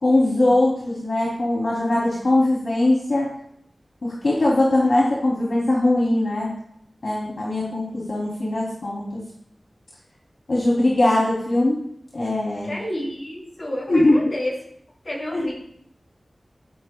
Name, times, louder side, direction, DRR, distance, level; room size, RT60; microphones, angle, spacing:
voice 1, 0.0-3.3 4.0-6.6 7.0-9.2 10.5-11.8 12.1-12.7 13.9-14.2 15.3-15.4, left 1 dB, 70° left, -5 dB, 2.8 m, -21 dB
voice 2, 12.7-14.5 15.0-15.5, left 1 dB, 45° left, -3 dB, 5.8 m, -30 dB
15.0 x 14.0 x 2.3 m, 0.71 s
wide cardioid pair, 70°, 0 cm